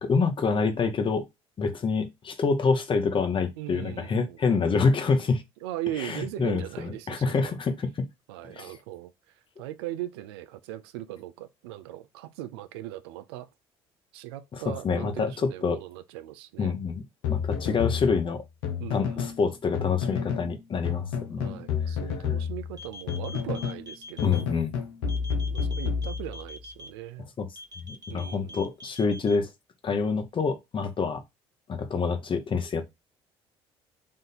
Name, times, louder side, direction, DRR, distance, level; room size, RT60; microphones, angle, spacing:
voice 1, 0.0-1.3 1.6-5.4 6.0-8.1 8.5-8.7 14.5-15.8 16.6-17.0 17.3-18.4 18.9-21.6 24.2-24.7 27.4-27.5 27.8-29.5 29.8-31.2 31.7-32.8, left 4 dB, 40° left, 0.9 m, -27 dB
voice 2, 3.6-4.4 5.6-7.6 8.3-13.5 14.1-16.7 18.8-19.3 21.4-24.5 25.4-27.3 28.1-28.7, right 13 dB, 90° right, 0.4 m, -39 dB
sound 1, 17.2-19.4 19.7-20.5 20.8-23.8 24.2-26.6, left 6 dB, 85° left, 0.8 m, -30 dB
sound 2, 22.7-24.4 25.1-26.9 27.6-29.4, left 2 dB, 30° right, 0.9 m, -43 dB
3.6 x 2.6 x 4.0 m
supercardioid pair, 70°, 13 cm